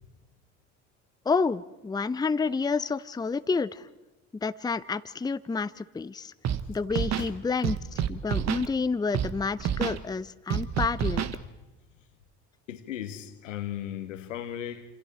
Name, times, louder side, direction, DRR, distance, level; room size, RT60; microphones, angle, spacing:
voice 1, 1.3-3.9 4.4-6.3 6.7-11.3, left 4 dB, 10° left, 0.6 m, -29 dB
Scratching (performance technique), 6.4-6.6 6.9-7.3 7.6-8.7 9.1-9.3 9.6-10.0 10.5-11.4, right 9 dB, 45° right, 1.3 m, -28 dB
voice 2, 12.7-14.8, left 11 dB, 85° left, 1.7 m, -36 dB
28.0 x 27.0 x 4.4 m
hypercardioid pair, 65°, 36 cm